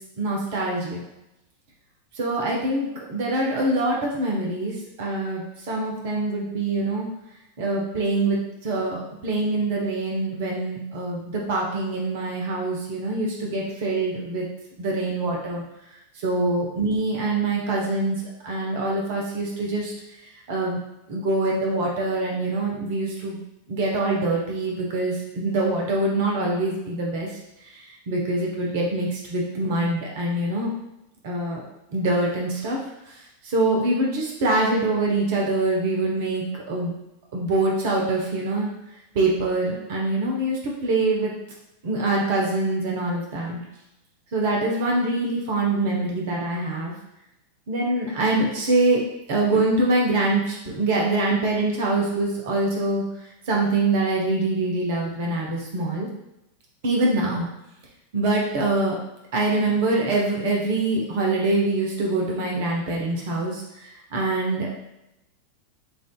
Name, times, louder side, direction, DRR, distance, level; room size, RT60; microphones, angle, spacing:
voice 1, 0.2-1.0 2.2-7.1 7.6-14.5 14.8-15.6 16.2-19.9 20.5-20.8 21.1-23.4 23.7-27.3 28.1-30.7 31.2-31.6 31.9-32.8 33.4-36.9 37.3-38.7 39.1-41.3 41.8-43.6 44.3-46.9 47.7-49.0 49.3-53.1 53.5-56.1 56.8-57.5 58.1-58.9 59.3-64.8, right 2 dB, 50° right, -2 dB, 0.9 m, -24 dB
6.9 x 2.6 x 2.2 m, 0.90 s
figure-of-eight pair, 90°, 0 cm